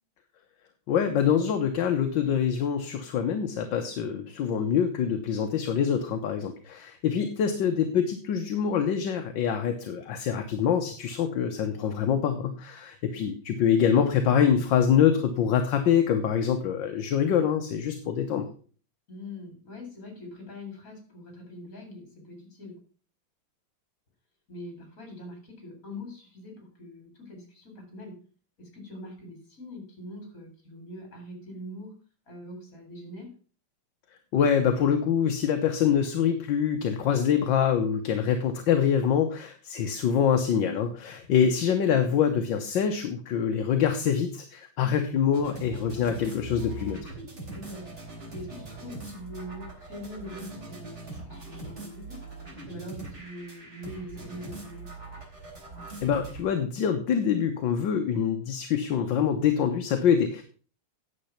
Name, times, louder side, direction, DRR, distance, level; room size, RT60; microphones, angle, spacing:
voice 1, 0.9-18.5 34.3-47.1 56.0-60.4, left 8 dB, 65° left, 5 dB, 1.6 m, -25 dB
voice 2, 19.1-22.8 24.5-28.2 28.6-32.0 32.3-33.3 47.5-47.9 48.3-52.2 52.7-54.9, left 1 dB, 40° left, 3 dB, 4.2 m, -43 dB
sound 1, 45.3-56.4, right 2 dB, 30° right, 3.8 m, -41 dB
9.8 x 7.1 x 5.7 m, 0.39 s
omnidirectional pair, 2.4 m